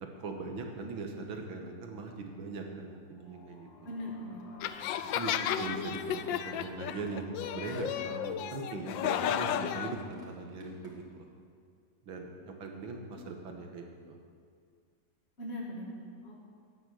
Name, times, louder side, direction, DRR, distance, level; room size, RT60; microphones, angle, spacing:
voice 1, 0.0-3.7 5.2-11.2 12.1-14.2, right 3 dB, 90° right, 3 dB, 2.2 m, -40 dB
sound 1, 3.0-10.5, left 3 dB, 60° left, 1.6 m, -53 dB
voice 2, 3.8-4.7 5.2-6.0 15.4-16.4, left 1 dB, 35° left, -4 dB, 2.3 m, -42 dB
sound 2, 4.6-10.0, left 10 dB, 80° left, 1.3 m, -33 dB
sound 3, 6.1-11.4, equal, ahead, 2.8 m, -58 dB
11.5 x 9.4 x 7.7 m, 2.1 s
omnidirectional pair, 2.1 m